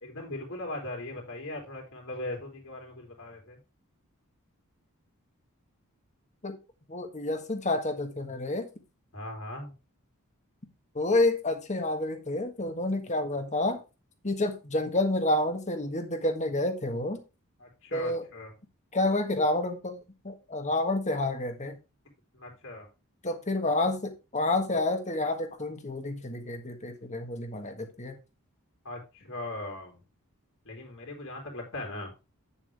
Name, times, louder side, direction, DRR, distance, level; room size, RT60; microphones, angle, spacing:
voice 1, 0.0-3.6 9.1-9.7 17.6-18.5 22.3-22.9 28.9-30.0 30.7-32.1, left 2 dB, 60° left, 0 dB, 3.4 m, -39 dB
voice 2, 6.9-8.7 10.9-13.8 14.2-17.2 17.9-18.3 18.9-21.8 23.2-28.2, left 2 dB, 30° left, 6 dB, 1.6 m, -29 dB
9.1 x 7.1 x 3.4 m, 0.28 s
head